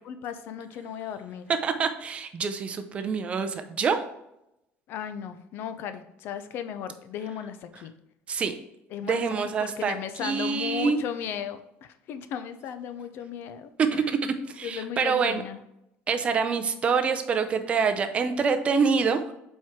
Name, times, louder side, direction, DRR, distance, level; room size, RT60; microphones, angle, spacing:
voice 1, 0.1-1.5 4.9-7.9 8.9-9.2 9.6-14.0 14.6-15.6, left 8 dB, 50° left, 10 dB, 0.6 m, -36 dB
voice 2, 1.6-4.0 8.3-8.5 9.0-10.0 10.2-11.0 13.8-15.4 16.1-19.3, right 5 dB, 25° right, 8 dB, 0.5 m, -26 dB
7.5 x 4.5 x 3.6 m, 0.84 s
cardioid pair, 175°, 5 cm